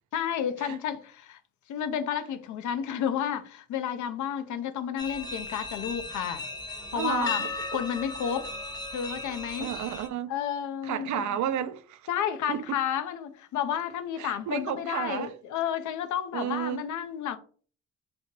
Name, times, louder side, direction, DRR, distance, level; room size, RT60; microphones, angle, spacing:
voice 1, 0.1-1.4 1.7-6.5 6.9-8.5 8.9-9.7 10.3-11.4 12.1-17.4, left 9 dB, 75° left, 0.6 m, -31 dB
sound 1, 5.0-10.1, left 2 dB, 15° left, 0.7 m, -36 dB
voice 2, 6.9-7.5 9.6-10.3 10.8-12.1 12.5-12.6 14.2-15.3 16.3-16.8, right 10 dB, 70° right, 0.5 m, -32 dB
3.1 x 2.8 x 4.4 m
cardioid pair, 90°, 30 cm